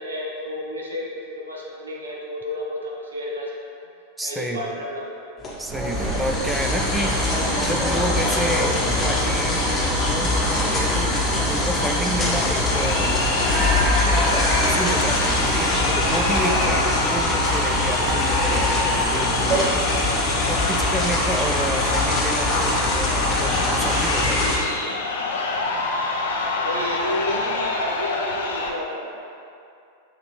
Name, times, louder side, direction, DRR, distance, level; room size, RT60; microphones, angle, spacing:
voice 1, 0.0-3.9 4.2-5.3 26.2-29.2, left 1 dB, 75° right, -3 dB, 0.7 m, -31 dB
voice 2, 4.2-4.8 5.6-11.2 11.5-13.2 13.6-24.6, right 1 dB, 5° right, 3 dB, 0.4 m, -30 dB
sound 1, 5.4-24.6, left 2 dB, 15° left, 0.9 m, -23 dB
sound 2, 5.7-19.7, right 1 dB, 25° right, 0.8 m, -28 dB
Crowd, 12.6-28.7, left 3 dB, 60° left, 0.4 m, -26 dB
5.7 x 2.9 x 3.2 m, 2.6 s
figure-of-eight pair, 90°, 0 cm